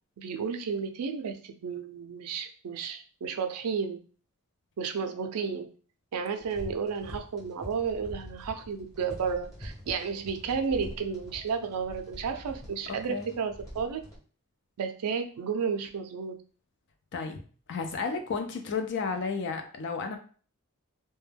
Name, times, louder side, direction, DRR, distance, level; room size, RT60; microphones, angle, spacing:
voice 1, 0.2-4.0 4.8-5.7 6.1-14.0 14.8-16.3, right 6 dB, 85° right, 7 dB, 0.4 m, -32 dB
sound 1, 6.4-14.2, equal, 15° left, 1.1 m, -45 dB
voice 2, 17.7-20.2, left 5 dB, 55° left, 6 dB, 0.4 m, -32 dB
2.2 x 2.1 x 3.2 m, 0.40 s
head